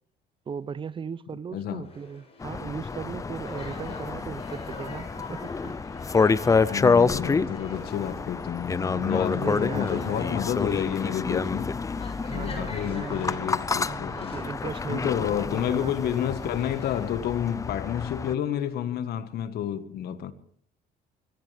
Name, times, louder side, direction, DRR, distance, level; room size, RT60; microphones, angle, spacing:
voice 1, 0.5-5.8 8.8-10.5 12.2-13.5 13.8-16.5, right 6 dB, 30° right, 0.6 m, -38 dB
voice 2, 1.5-1.8 6.7-11.8 12.3-14.4 14.9-20.3, left 10 dB, 70° left, 1.5 m, -30 dB
sound 1, 1.8-17.1, left 3 dB, 35° left, 7.2 m, -45 dB
sound 2, 2.4-18.3, left 4 dB, 20° left, 0.6 m, -28 dB
24.0 x 17.0 x 3.4 m
cardioid pair, 110°, 17 cm